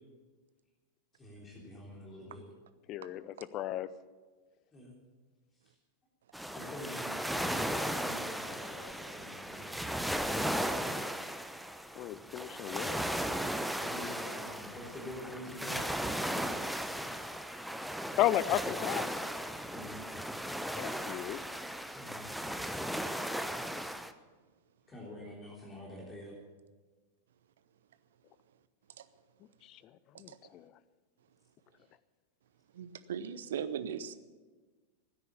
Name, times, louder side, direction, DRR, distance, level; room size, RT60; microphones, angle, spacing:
voice 1, 1.1-2.4 4.7-5.0 5.6-5.7 6.5-10.6 13.8-16.4 19.7-20.1 21.8-22.3 24.9-26.3 31.8-31.9, left 1 dB, 20° left, -3 dB, 3.3 m, -47 dB
voice 2, 2.9-3.9 12.0-13.0 18.2-19.0 20.8-21.4 29.7-29.8 30.2-30.7, left 13 dB, 35° left, 17 dB, 0.6 m, -33 dB
sound 1, 6.3-24.1, equal, ahead, 0.8 m, -36 dB
voice 3, 32.8-34.2, right 8 dB, 60° right, 13 dB, 0.8 m, -38 dB
16.0 x 9.5 x 8.4 m, 1.4 s
figure-of-eight pair, 90°, 0 cm